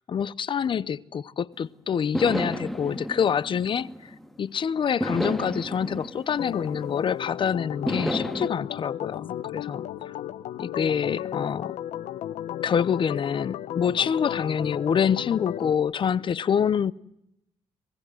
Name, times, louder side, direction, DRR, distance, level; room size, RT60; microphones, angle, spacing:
voice 1, 0.1-3.9 4.4-10.2 10.6-11.7 12.6-16.9, left 7 dB, 45° left, 0.8 m, -26 dB
sound 1, 1.5-1.6 2.1-4.4 5.0-7.3 7.9-8.5, equal, ahead, 2.2 m, -32 dB
Organ, 6.4-15.7, left 11 dB, 80° left, 1.0 m, -34 dB
24.0 x 21.0 x 7.8 m
cardioid pair, 90°, 11 cm